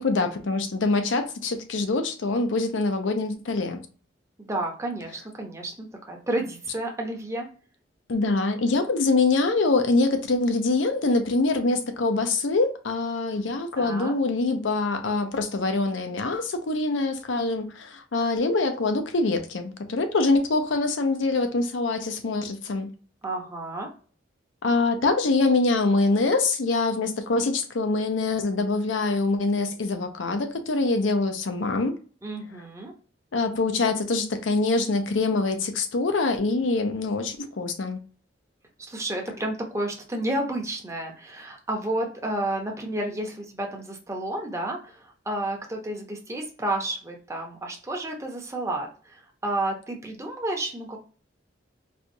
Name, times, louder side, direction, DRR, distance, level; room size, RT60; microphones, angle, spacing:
voice 1, 0.0-3.8 8.1-22.9 24.6-31.9 33.3-38.0, left 3 dB, 90° left, 0.6 m, -24 dB
voice 2, 4.4-7.5 13.8-14.2 23.2-23.9 32.2-32.9 38.8-51.0, right 1 dB, 15° right, 0.7 m, -31 dB
4.3 x 2.3 x 2.6 m
head